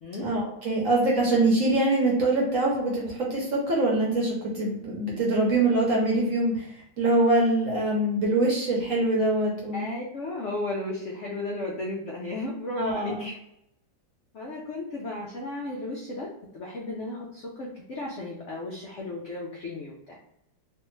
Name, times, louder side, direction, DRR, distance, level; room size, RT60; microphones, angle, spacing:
voice 1, 0.2-6.7 7.0-9.9 12.8-13.3, right 2 dB, 55° right, -3 dB, 0.9 m, -24 dB
voice 2, 9.7-13.4 14.3-20.2, left 2 dB, 75° left, -2 dB, 0.6 m, -34 dB
3.3 x 2.5 x 3.1 m, 0.79 s
omnidirectional pair, 2.0 m